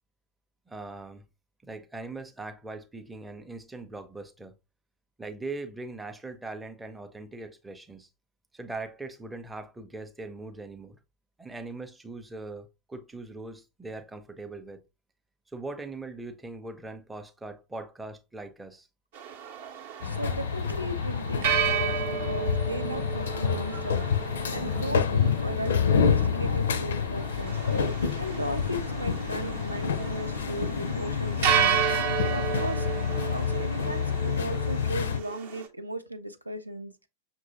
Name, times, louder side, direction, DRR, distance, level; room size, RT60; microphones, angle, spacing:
voice 1, 0.7-1.3 1.6-4.5 5.2-8.1 8.5-11.0 11.4-14.8 15.5-18.9, right 3 dB, 10° right, 0.5 m, -40 dB
sound 1, 19.1-35.7, right 8 dB, 55° right, 0.7 m, -33 dB
sound 2, 20.0-35.2, left 6 dB, 65° left, 0.4 m, -28 dB
voice 2, 20.0-27.6 28.2-31.8 32.2-32.9 33.3-37.1, right 1 dB, 85° right, 0.4 m, -37 dB
5.9 x 2.6 x 2.7 m
figure-of-eight pair, 90°, 0 cm